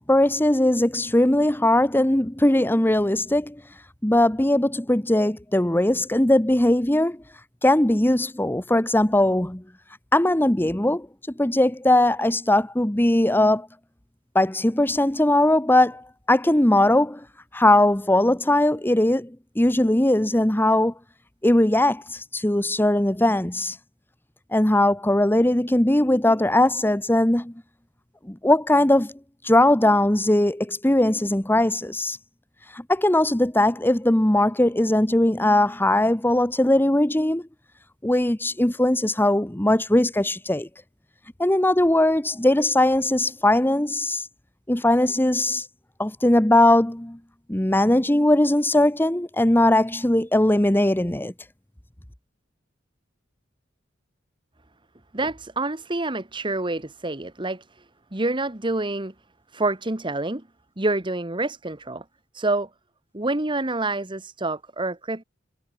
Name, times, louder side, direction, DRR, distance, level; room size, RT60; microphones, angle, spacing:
voice 1, 0.1-3.6 4.0-7.2 7.6-9.6 10.1-11.1 11.4-13.7 14.3-17.2 17.5-20.9 21.4-23.8 24.5-27.5 28.2-29.1 29.4-32.2 32.7-37.4 38.0-40.7 41.4-44.3 44.7-45.7 46.0-47.2 47.5-51.3, left 1 dB, 10° left, 1.1 m, -20 dB
voice 2, 55.1-57.8 58.1-59.1 59.5-60.4 60.8-62.0 62.3-62.7 63.1-65.2, right 2 dB, 25° right, 1.7 m, -27 dB
head